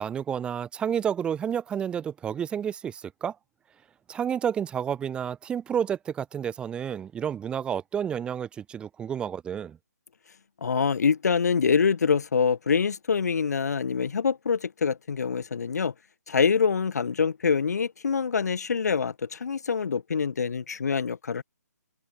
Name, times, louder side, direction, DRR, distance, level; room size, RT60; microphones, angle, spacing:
voice 1, 0.0-3.3 4.1-9.8, right 8 dB, 10° right, 1.2 m, -30 dB
voice 2, 10.6-15.9 16.3-21.4, left 6 dB, 65° left, 2.1 m, -25 dB
open air
figure-of-eight pair, 145°, 10 cm